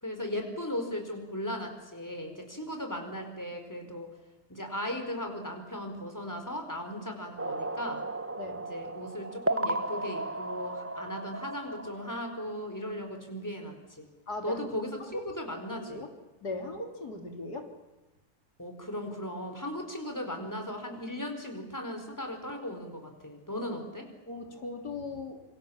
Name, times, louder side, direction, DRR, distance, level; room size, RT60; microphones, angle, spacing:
voice 1, 0.0-4.1 4.5-8.0 8.5-14.1 14.4-16.1 18.6-24.1, left 1 dB, 10° left, 5 dB, 4.6 m, -37 dB
sound 1, 7.4-12.7, right 2 dB, 20° right, 0.4 m, -35 dB
voice 2, 14.3-14.6 15.1-15.2 15.9-16.1 16.4-17.7 24.3-25.4, left 2 dB, 75° left, 4 dB, 3.7 m, -38 dB
27.0 x 26.0 x 7.3 m, 1.1 s
omnidirectional pair, 1.7 m